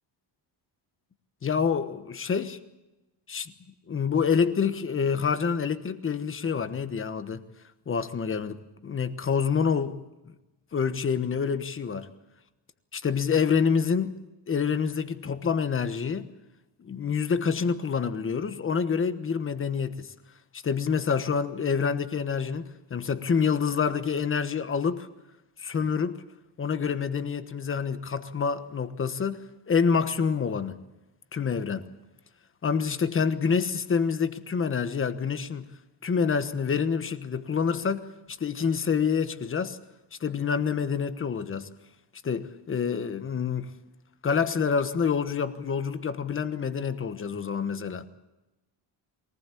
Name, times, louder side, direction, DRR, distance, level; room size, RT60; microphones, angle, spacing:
voice 1, 1.4-2.6 3.3-3.5 3.9-7.4 7.9-10.0 10.7-12.1 12.9-14.2 14.5-16.3 16.8-20.1 20.5-25.1 25.6-26.2 26.6-30.8 31.3-31.9 32.6-35.7 36.0-39.8 40.2-41.7 42.2-43.7 44.2-48.1, left 6 dB, 25° left, 1.2 m, -27 dB
23.0 x 19.0 x 8.5 m
cardioid pair, 175°, 48 cm